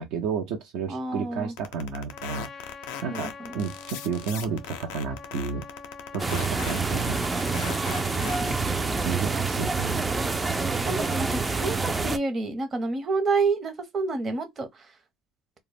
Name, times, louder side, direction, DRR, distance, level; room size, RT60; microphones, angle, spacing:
voice 1, 0.0-2.5 3.0-5.6 6.1-7.2 9.0-10.0, right 6 dB, 75° right, 0.6 m, -32 dB
voice 2, 0.9-1.5 3.1-3.5 8.2-8.7 10.8-15.0, right 3 dB, 35° right, 0.8 m, -29 dB
sound 1, 1.6-8.6, left 9 dB, 90° left, 0.4 m, -37 dB
Trumpet, 2.1-9.7, left 4 dB, 40° left, 0.5 m, -45 dB
sound 2, 6.2-12.2, right 4 dB, 20° right, 0.3 m, -27 dB
2.2 x 2.0 x 3.2 m
supercardioid pair, 90°, 0 cm